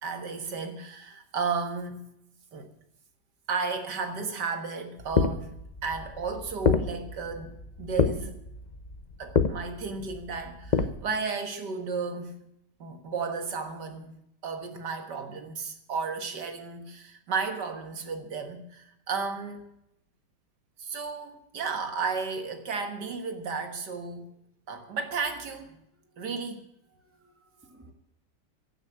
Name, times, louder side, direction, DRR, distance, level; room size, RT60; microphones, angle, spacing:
voice 1, 0.0-2.0 2.5-2.7 3.5-5.5 5.8-8.4 9.2-12.4 12.8-14.1 14.4-19.7 20.8-24.3 24.7-25.8 26.2-26.6, right 4 dB, 75° right, 2.2 m, -33 dB
sound 1, 5.0-10.9, left 5 dB, 35° left, 0.7 m, -28 dB
voice 2, 26.9-27.9, right 1 dB, 10° right, 1.9 m, -58 dB
16.0 x 7.4 x 9.1 m
omnidirectional pair, 1.8 m